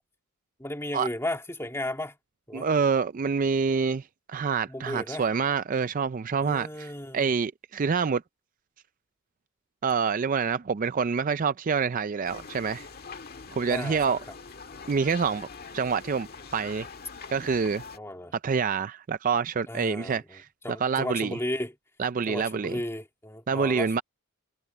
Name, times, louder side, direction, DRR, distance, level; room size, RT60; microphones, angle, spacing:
voice 1, 0.6-2.2 2.5-2.7 4.7-5.3 6.4-7.3 13.7-14.2 17.9-18.3 19.7-21.7 22.3-24.0, left 1 dB, 10° left, 2.7 m, -34 dB
voice 2, 2.5-8.2 9.8-12.9 13.6-14.2 14.9-15.5 15.7-16.9 17.3-17.8 18.4-20.5 20.8-21.4 22.0-22.8 23.5-24.0, right 5 dB, 35° right, 0.4 m, -27 dB
sound 1, 12.2-18.0, left 5 dB, 45° left, 1.7 m, -43 dB
head